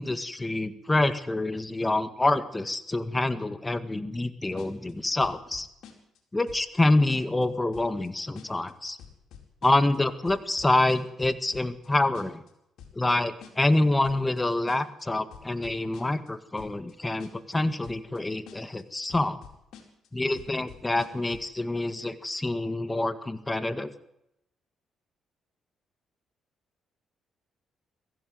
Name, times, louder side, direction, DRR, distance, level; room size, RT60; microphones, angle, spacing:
voice 1, 0.0-5.7 6.3-9.0 9.6-12.4 12.9-19.4 20.1-23.9, left 2 dB, 15° left, 11 dB, 1.7 m, -26 dB
sound 1, 4.6-4.9 5.2-6.2 6.5-6.8 7.1-7.4 7.7-8.1 8.3-8.7 9.0-10.0 10.2-11.9 12.1-12.5 12.8-13.1 13.4-13.8 14.0-14.4 14.7-15.0 15.3-16.3 16.6-16.9 17.2-17.5 17.8-18.2 18.5-18.8 19.1-20.1 20.4-21.5, left 8 dB, 80° left, 4.7 m, -48 dB
22.5 x 15.5 x 9.5 m, 0.80 s
cardioid pair, 90°, 0 cm